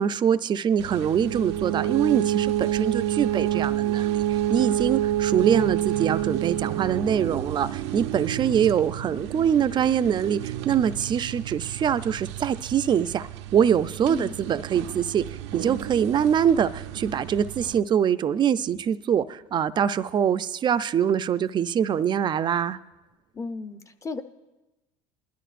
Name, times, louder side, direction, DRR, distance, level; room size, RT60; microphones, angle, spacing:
voice 1, 0.0-22.8, right 8 dB, 35° right, 12 dB, 0.5 m, -24 dB
sound 1, 0.8-17.8, right 13 dB, 85° right, 0.6 m, -29 dB
voice 2, 14.1-14.4 23.3-24.2, left 4 dB, 20° left, 9 dB, 0.7 m, -34 dB
20.5 x 12.0 x 2.5 m, 1.1 s
supercardioid pair, 100°, 14 cm